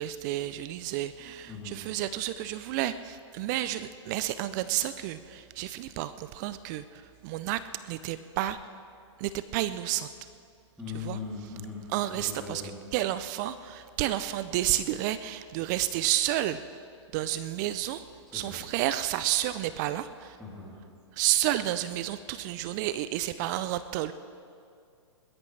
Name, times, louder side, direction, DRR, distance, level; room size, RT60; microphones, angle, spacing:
voice 1, 0.0-8.6 9.2-10.1 10.9-11.2 11.9-12.6 12.9-16.6 17.1-18.1 18.3-20.4 21.1-24.1, right 13 dB, 35° right, 13 dB, 0.4 m, -31 dB
voice 2, 1.5-1.8 10.8-12.7 18.3-18.6 20.4-20.7, left 5 dB, ahead, -7 dB, 2.9 m, -40 dB
21.5 x 13.0 x 3.3 m, 2.4 s
hypercardioid pair, 125°, 16 cm